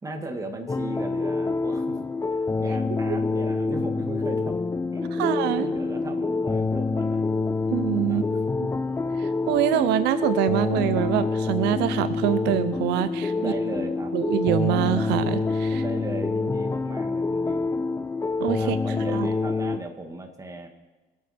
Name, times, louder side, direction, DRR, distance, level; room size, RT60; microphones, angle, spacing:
voice 1, 0.0-2.0 2.3-4.6 4.9-5.3 5.6-7.2 8.1-8.4 13.4-14.2 15.7-17.7 18.6-20.7, right 2 dB, 20° right, 5 dB, 1.8 m, -36 dB
sound 1, 0.7-19.8, left 3 dB, 15° left, 0.5 m, -26 dB
voice 2, 5.2-5.7 7.7-8.2 9.2-13.5 14.1-15.8 18.4-18.8 19.1-19.3, right 13 dB, 90° right, 14 dB, 0.6 m, -25 dB
24.5 x 8.3 x 4.3 m, 1.2 s
cardioid pair, 110°, 17 cm